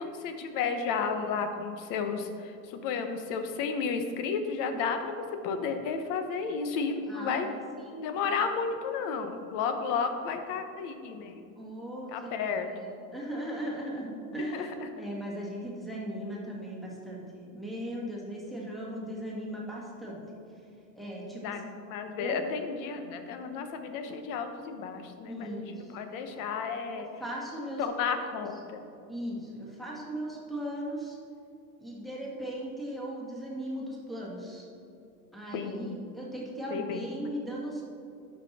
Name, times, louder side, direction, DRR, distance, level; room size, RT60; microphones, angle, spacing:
voice 1, 0.0-5.1 5.4-7.5 8.0-11.4 12.1-12.7 14.5-14.7 21.4-27.1 27.8-28.8 35.5-36.0 36.7-37.0, left 5 dB, 50° left, 7 dB, 1.1 m, -32 dB
voice 2, 7.1-8.4 11.6-20.2 20.9-21.6 22.2-22.4 25.3-26.0 27.0-28.3 29.1-31.2 31.8-34.7 35.3-37.8, right 1 dB, ahead, -4 dB, 1.7 m, -38 dB
12.0 x 5.7 x 4.2 m, 2.5 s
supercardioid pair, 135°, 42 cm